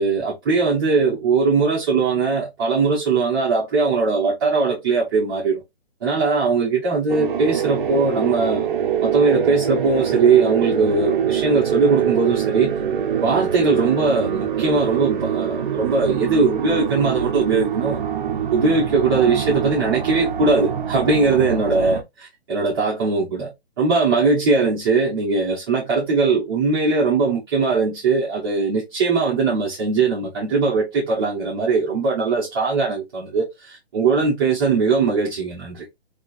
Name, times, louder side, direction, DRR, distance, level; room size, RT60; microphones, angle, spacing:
voice 1, 0.0-5.6 6.0-8.7 9.0-12.8 13.2-18.0 18.5-35.9, right 4 dB, 20° right, 0.9 m, -20 dB
sound 1, 7.1-22.0, right 8 dB, 50° right, 0.6 m, -24 dB
4.3 x 2.8 x 2.4 m
hypercardioid pair, 165°, 33 cm